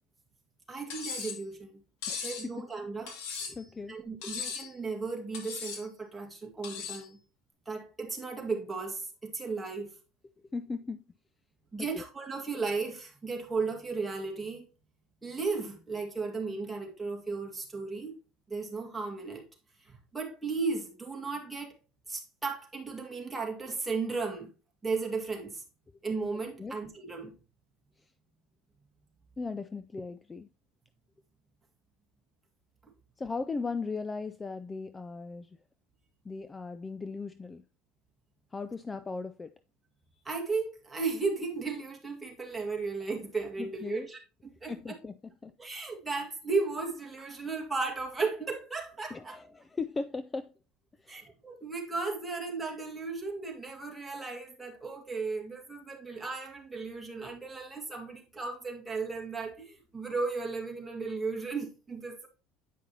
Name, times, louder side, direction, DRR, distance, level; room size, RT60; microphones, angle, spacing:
voice 1, 0.7-1.7 2.2-3.1 3.9-7.2 7.7-9.9 11.7-14.6 15.2-18.2 18.5-19.5 19.8-21.7 22.1-24.5 24.8-25.6 26.0-27.3 40.2-45.0 45.6-49.4 51.1-62.3, right 4 dB, 10° right, 2.0 m, -35 dB
Cutlery silverware, 0.9-1.4 2.0-2.5 3.1-3.7 4.2-4.7 5.3-5.8 6.6-7.1, left 6 dB, 70° left, 2.3 m, -38 dB
voice 2, 2.1-2.6 3.5-4.3 10.5-11.0 11.8-12.0 26.6-26.7 28.0-28.1 29.4-30.5 33.2-35.6 36.2-37.6 38.5-39.5 43.6-44.1 44.7-45.5 49.1-50.5 51.0-51.2, left 4 dB, 15° left, 0.3 m, -38 dB
9.2 x 5.3 x 2.8 m
cardioid pair, 130°, 0 cm